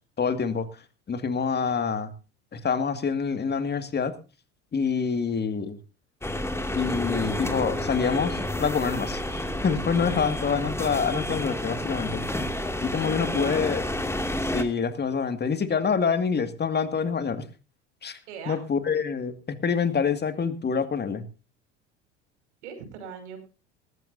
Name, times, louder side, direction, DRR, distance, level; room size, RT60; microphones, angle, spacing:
voice 1, 0.2-0.7 1.1-2.1 2.5-4.1 4.7-5.8 6.7-12.2 12.8-13.8 14.4-17.5 18.0-18.2 18.5-21.2, left 6 dB, 30° left, 10 dB, 2.2 m, -26 dB
sound 1, 6.2-14.6, left 1 dB, 5° left, 2.4 m, -30 dB
voice 2, 13.0-13.9 18.3-18.6 20.9-21.0 22.6-23.4, right 6 dB, 75° right, 7 dB, 5.8 m, -41 dB
20.5 x 15.5 x 2.7 m, 0.33 s
hypercardioid pair, 75°, 35 cm